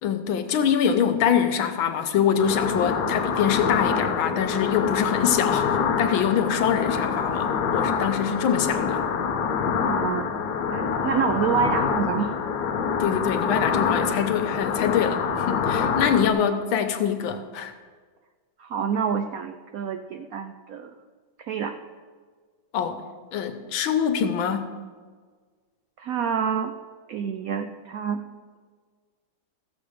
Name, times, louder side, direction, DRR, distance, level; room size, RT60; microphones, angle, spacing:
voice 1, 0.0-9.0 13.0-17.7 22.7-23.0 23.3-24.7, left 8 dB, 90° left, 8 dB, 1.7 m, -24 dB
sound 1, 2.4-16.3, left 6 dB, 65° left, 1.2 m, -26 dB
voice 2, 9.8-10.3 10.7-12.4 16.0-16.2 18.6-20.9 21.4-21.7 26.0-26.7 27.1-28.2, right 7 dB, 85° right, 7 dB, 0.7 m, -27 dB
15.0 x 7.2 x 5.0 m, 1.6 s
omnidirectional pair, 2.2 m